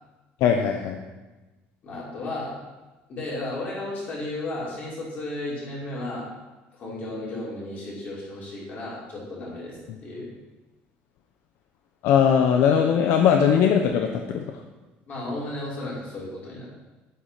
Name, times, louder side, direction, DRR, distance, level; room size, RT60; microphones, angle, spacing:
voice 1, 0.4-1.0 9.9-10.0 12.0-14.4, left 7 dB, 65° left, 4 dB, 0.9 m, -20 dB
voice 2, 1.8-2.5 3.1-6.3 6.7-10.3 15.1-16.7, left 2 dB, 40° left, -5 dB, 4.9 m, -34 dB
10.5 x 9.6 x 5.8 m, 1.2 s
cardioid pair, 160°, 4 cm